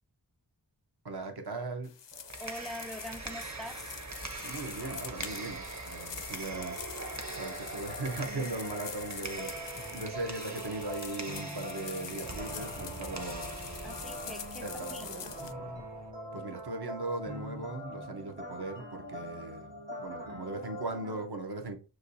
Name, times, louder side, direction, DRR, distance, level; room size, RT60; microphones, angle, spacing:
voice 1, 1.0-1.9 4.4-13.5 14.6-15.8 16.3-21.8, right 2 dB, 65° right, 1.0 m, -39 dB
sound 1, 1.8-15.5, left 8 dB, 85° left, 0.6 m, -45 dB
sound 2, 2.1-16.1, right 3 dB, 40° right, 1.0 m, -43 dB
voice 2, 2.4-4.0 13.8-15.3, left 1 dB, ahead, 0.5 m, -44 dB
sound 3, 7.4-21.2, equal, 80° right, 2.0 m, -43 dB
6.3 x 3.0 x 2.7 m
wide cardioid pair, 50°, 42 cm